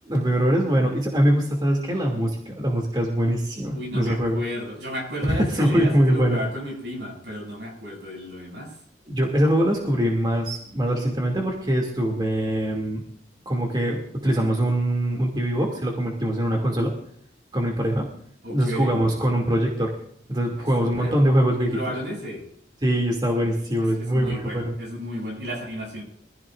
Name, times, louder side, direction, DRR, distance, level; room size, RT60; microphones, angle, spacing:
voice 1, 0.0-4.4 5.3-6.4 9.1-13.0 13.5-16.9 17.5-18.1 18.5-19.9 20.3-21.8 22.8-24.7, equal, 25° right, 0 dB, 2.6 m, -23 dB
voice 2, 3.7-8.7 18.4-19.0 20.6-21.2 21.6-22.4 23.9-26.0, equal, 75° right, 0 dB, 7.3 m, -33 dB
24.5 x 15.5 x 2.6 m, 0.64 s
head